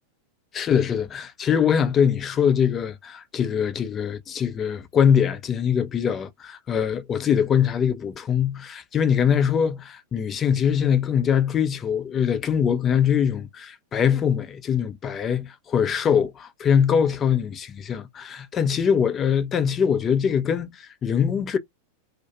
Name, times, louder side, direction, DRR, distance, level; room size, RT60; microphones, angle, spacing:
voice 1, 0.5-20.7 21.0-21.6, left 7 dB, 25° left, 0.4 m, -22 dB
2.2 x 2.1 x 2.7 m
figure-of-eight pair, 90°, 0 cm